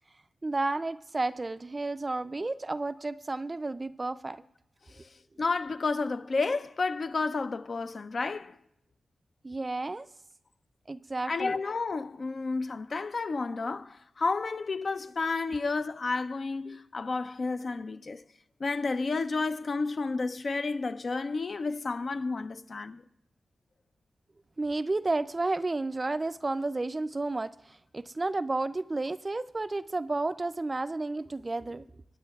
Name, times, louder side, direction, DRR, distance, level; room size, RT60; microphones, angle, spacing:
voice 1, 0.4-4.4 9.4-10.1 10.9-11.6 16.7-16.8 24.6-31.9, right 2 dB, 30° right, 0.3 m, -32 dB
voice 2, 5.4-8.6 11.3-18.2 18.6-23.0, left 3 dB, 50° left, 0.4 m, -31 dB
26.5 x 8.9 x 2.3 m
cardioid pair, 80°, 0 cm